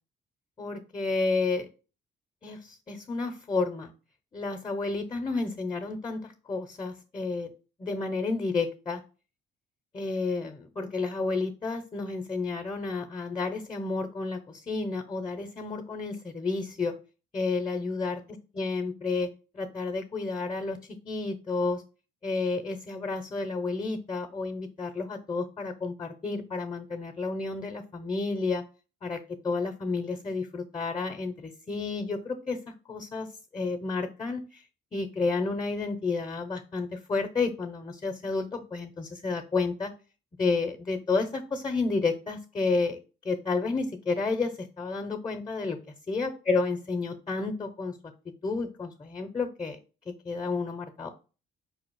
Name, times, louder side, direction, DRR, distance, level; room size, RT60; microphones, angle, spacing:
voice 1, 0.6-1.7 2.4-3.9 4.3-7.5 7.8-9.0 9.9-16.9 17.3-18.2 18.5-19.3 19.5-20.8 21.0-21.8 22.2-28.6 29.0-32.6 32.9-33.3 33.5-34.6 34.9-39.9 40.4-43.0 43.2-45.8 46.1-48.0 48.4-49.8 50.2-51.1, left 3 dB, 25° left, 6 dB, 0.6 m, -31 dB
4.9 x 2.4 x 4.5 m, 0.34 s
cardioid pair, 90°, 20 cm